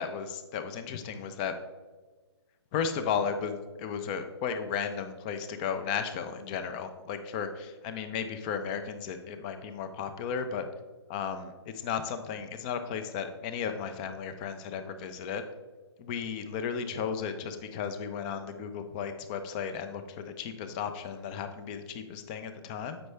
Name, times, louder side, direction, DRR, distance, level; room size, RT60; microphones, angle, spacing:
voice 1, 0.0-1.5 2.7-10.7 11.1-15.4 16.0-23.0, left 7 dB, 20° left, 8 dB, 0.4 m, -34 dB
7.8 x 5.4 x 3.2 m, 1.3 s
hypercardioid pair, 155°, 15 cm